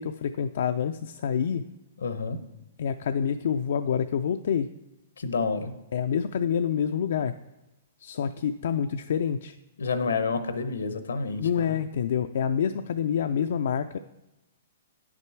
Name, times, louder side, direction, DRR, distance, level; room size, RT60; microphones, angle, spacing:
voice 1, 0.0-1.7 2.8-4.7 5.9-7.3 8.0-9.6 11.3-14.0, left 7 dB, 70° left, 9 dB, 0.3 m, -27 dB
voice 2, 2.0-2.4 5.2-5.7 9.8-11.8, left 4 dB, 85° left, 11 dB, 0.8 m, -29 dB
9.4 x 6.0 x 4.5 m, 0.99 s
hypercardioid pair, 130°, 0 cm